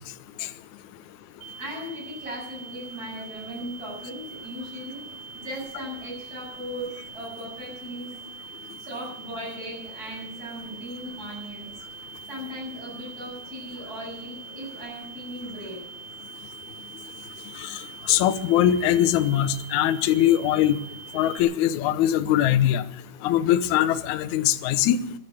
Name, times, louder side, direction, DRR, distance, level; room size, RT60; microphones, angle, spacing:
sound 1, 1.4-21.4, right 5 dB, 65° right, 3.0 m, -43 dB
voice 1, 1.6-5.0 5.3-8.1 8.8-11.7 12.3-15.8, equal, 20° right, -3 dB, 8.4 m, -37 dB
voice 2, 18.1-20.8 21.1-22.8 23.2-25.0, left 11 dB, 75° left, 11 dB, 1.8 m, -21 dB
14.5 x 11.5 x 7.7 m, 0.84 s
omnidirectional pair, 4.4 m